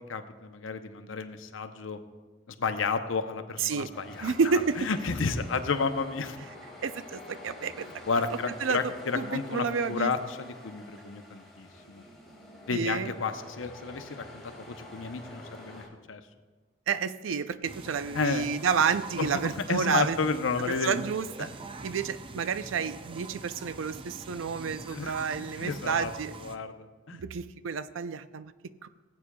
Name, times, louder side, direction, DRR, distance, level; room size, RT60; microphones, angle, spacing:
voice 1, 0.1-2.0 2.6-4.3 4.8-6.4 8.1-12.0 12.7-16.2 18.1-18.5 19.2-21.0 21.4-21.5 24.9-26.1 26.4-27.2, left 4 dB, 90° left, 9 dB, 0.7 m, -32 dB
voice 2, 3.6-3.9 4.2-4.9 6.8-7.9 8.1-8.2 8.6-10.1 12.7-13.1 16.9-20.2 20.7-21.5 21.8-26.3 27.1-28.5 28.8-28.9, right 6 dB, 85° right, 13 dB, 0.5 m, -30 dB
sound 1, 3.9-15.9, left 1 dB, ahead, 1.9 m, -48 dB
sound 2, 17.6-26.6, right 3 dB, 30° right, 0.5 m, -44 dB
18.5 x 8.4 x 2.3 m, 1.3 s
head